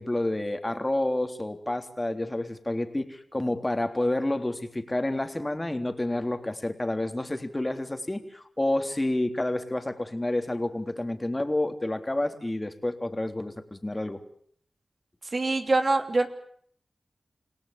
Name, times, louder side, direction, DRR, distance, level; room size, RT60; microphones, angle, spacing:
voice 1, 0.0-14.2, left 1 dB, 25° left, 8 dB, 3.4 m, -29 dB
voice 2, 15.3-16.3, right 2 dB, 55° right, 7 dB, 3.0 m, -24 dB
28.0 x 17.5 x 8.7 m, 0.63 s
cardioid pair, 40°, 0 cm